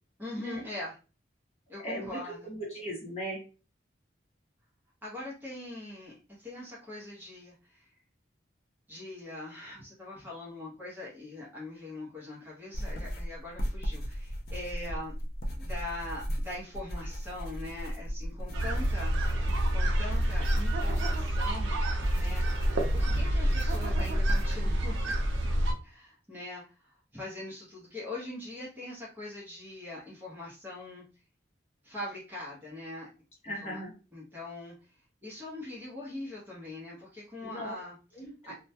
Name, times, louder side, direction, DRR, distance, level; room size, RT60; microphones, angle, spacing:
voice 1, 0.2-1.0 1.7-2.5 5.0-7.9 8.9-15.2 15.6-19.1 19.7-21.8 22.1-22.4 22.9-25.1 25.8-31.0 31.8-33.1 33.4-33.8 34.1-34.7 35.2-38.0 38.5-38.6, left 2 dB, 10° right, -6 dB, 0.7 m, -42 dB
voice 2, 1.8-3.4 33.4-33.9 37.4-37.7 38.1-38.5, right 1 dB, 35° left, -3 dB, 0.8 m, -38 dB
sound 1, 12.7-24.8, equal, 50° left, 0.4 m, -36 dB
sound 2, 18.5-25.7, right 1 dB, 85° right, 0.5 m, -28 dB
2.2 x 2.1 x 2.7 m, 0.34 s
head